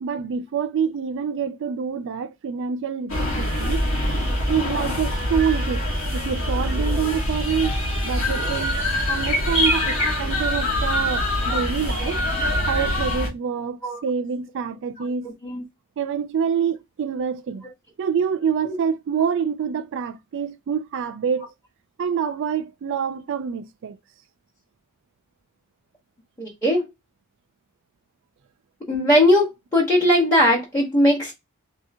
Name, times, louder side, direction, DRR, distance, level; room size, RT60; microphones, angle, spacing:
voice 1, 0.0-3.8 4.5-5.8 6.1-7.8 8.0-8.8 9.1-12.2 12.7-15.3 16.0-17.6 18.0-21.5 22.0-24.0, right 7 dB, 60° right, 0.3 m, -26 dB
sound 1, 3.1-13.3, left 1 dB, 65° left, 1.3 m, -24 dB
voice 2, 15.2-15.6 18.6-18.8 26.4-26.9 28.9-31.3, left 1 dB, 15° left, 1.0 m, -19 dB
3.3 x 2.7 x 2.5 m
head